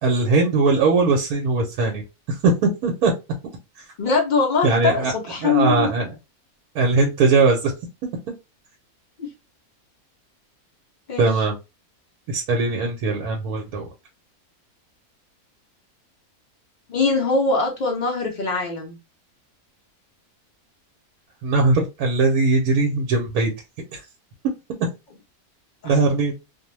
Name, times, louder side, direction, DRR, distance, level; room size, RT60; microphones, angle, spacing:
voice 1, 0.0-2.0 2.3-3.1 4.6-5.1 5.4-6.1 6.7-7.7 11.2-11.5 12.3-13.9 21.4-23.5 23.9-24.0 25.8-26.3, right 3 dB, 85° right, 1.1 m, -20 dB
voice 2, 4.0-5.9 9.2-9.3 11.1-11.3 16.9-19.0 25.8-25.9, left 4 dB, 75° left, 0.4 m, -22 dB
2.6 x 2.0 x 2.9 m
omnidirectional pair, 1.6 m